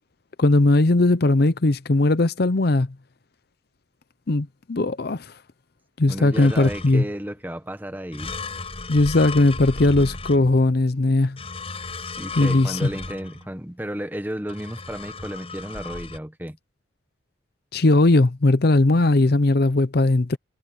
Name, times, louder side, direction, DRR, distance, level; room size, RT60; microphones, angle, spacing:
voice 1, 0.4-2.9 4.3-5.3 6.0-7.0 8.9-11.4 12.4-12.9 17.7-20.4, left 2 dB, 55° left, 0.7 m, -19 dB
voice 2, 6.1-8.4 12.2-16.6, equal, 10° right, 1.4 m, -33 dB
sound 1, 6.3-7.2 8.1-10.8 11.4-13.6 14.5-16.2, left 3 dB, 30° left, 6.4 m, -35 dB
head